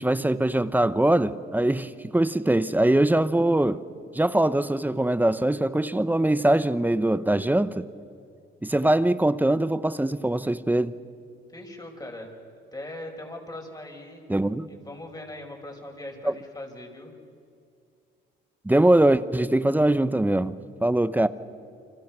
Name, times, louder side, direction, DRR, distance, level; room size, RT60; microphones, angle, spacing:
voice 1, 0.0-3.8 4.1-7.9 8.6-10.9 14.3-14.7 16.2-16.3 18.6-21.3, right 1 dB, 10° right, 14 dB, 0.9 m, -22 dB
voice 2, 11.5-12.3 12.7-14.2 14.7-17.1, left 1 dB, 20° left, 2 dB, 5.7 m, -40 dB
29.5 x 26.0 x 6.1 m, 2.4 s
cardioid pair, 90°, 20 cm